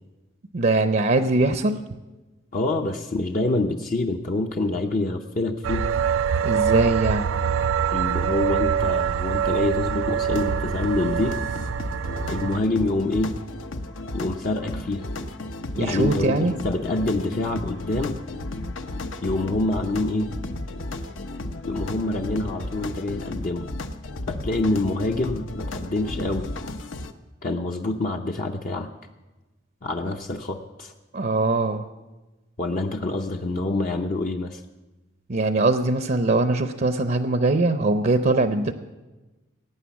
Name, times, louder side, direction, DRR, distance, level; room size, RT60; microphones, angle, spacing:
voice 1, 0.5-1.8 6.4-7.3 15.8-16.5 31.1-31.9 35.3-38.7, right 2 dB, 45° right, 9 dB, 0.6 m, -21 dB
voice 2, 2.5-5.9 7.9-11.4 12.3-13.4 14.1-15.1 15.7-18.2 19.2-20.3 21.7-23.7 24.3-26.5 27.4-28.9 29.8-30.9 32.6-34.6, left 2 dB, 45° left, 3 dB, 0.7 m, -26 dB
sound 1, 5.6-12.6, right 7 dB, 90° right, 0.4 m, -24 dB
sound 2, 10.2-27.1, left 2 dB, 75° left, 0.8 m, -34 dB
17.5 x 9.1 x 7.1 m, 1.1 s
head